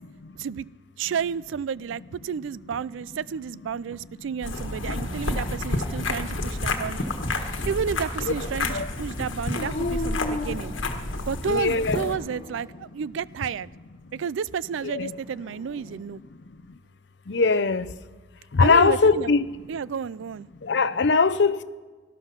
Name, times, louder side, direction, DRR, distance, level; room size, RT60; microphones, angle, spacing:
voice 1, 1.0-7.1 7.7-10.7 11.3-13.7 14.1-16.2 18.6-19.3 19.7-20.5, right 7 dB, 85° right, 0.4 m, -31 dB
sound 1, 4.4-12.1, left 2 dB, 85° left, 1.5 m, -30 dB
Dog, 9.5-11.4 12.1-12.9 15.1-16.0, left 2 dB, 45° left, 1.2 m, -35 dB
voice 2, 11.5-12.1 14.8-15.2 17.3-17.9 18.5-19.5 20.7-21.6, left 4 dB, 65° left, 0.6 m, -21 dB
18.5 x 12.0 x 5.9 m
head